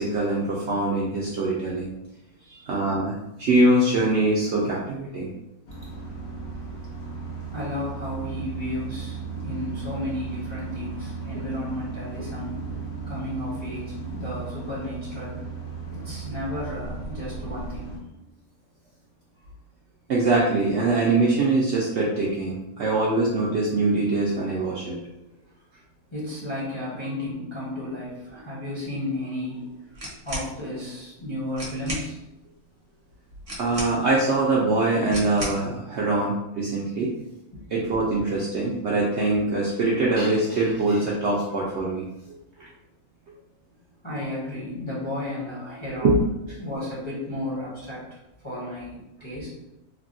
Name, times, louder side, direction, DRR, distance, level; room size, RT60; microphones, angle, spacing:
voice 1, 0.0-1.9 2.7-3.1 3.4-5.3 20.1-25.0 33.6-37.1 37.7-42.1 42.6-42.7 46.0-46.2, right 2 dB, 70° right, -5 dB, 0.6 m, -23 dB
voice 2, 2.4-2.7 7.5-12.6 13.1-15.4 15.9-18.2 26.1-29.9 30.2-32.2 35.1-35.2 37.5-37.6 44.0-46.2 46.6-48.0 48.4-49.5, left 1 dB, 30° left, -8 dB, 0.6 m, -33 dB
sound 1, 5.7-18.0, right 5 dB, 75° left, 1.1 m, -36 dB
sound 2, 29.9-30.5 31.2-31.3 31.5-32.1 33.4-34.2 35.1-35.7, equal, 30° right, 0.7 m, -34 dB
3.4 x 2.2 x 2.5 m, 0.91 s
omnidirectional pair, 1.6 m